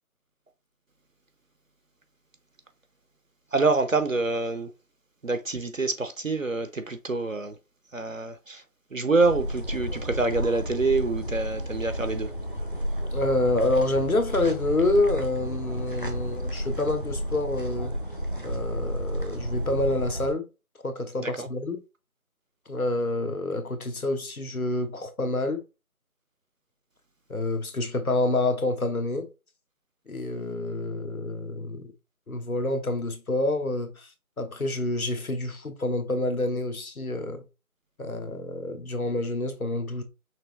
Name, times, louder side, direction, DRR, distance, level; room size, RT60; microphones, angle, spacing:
voice 1, 3.5-4.7 5.2-7.5 7.9-8.6 8.9-12.3 21.2-21.5, right 3 dB, 60° right, 0.7 m, -26 dB
sound 1, 9.2-20.3, equal, 35° left, 0.7 m, -32 dB
voice 2, 13.1-17.9 18.4-20.5 20.8-21.8 22.7-25.6 27.3-29.3 30.1-31.9 32.3-34.1 34.4-37.4 38.0-40.0, left 2 dB, 70° left, 1.2 m, -27 dB
5.9 x 2.9 x 3.0 m
figure-of-eight pair, 170°, 44 cm